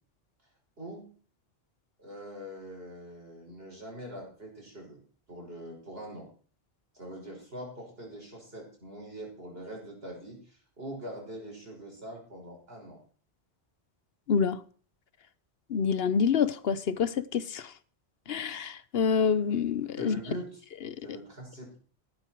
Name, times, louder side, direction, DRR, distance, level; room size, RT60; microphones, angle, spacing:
voice 1, 0.8-1.1 2.0-5.0 5.3-6.3 6.9-13.0 20.0-20.6 21.0-21.8, right 1 dB, 65° right, 6.5 m, -43 dB
voice 2, 14.3-14.6 15.7-17.7 18.3-20.2 20.9-21.0, left 6 dB, 70° left, 1.0 m, -27 dB
15.0 x 12.0 x 4.6 m
omnidirectional pair, 1.1 m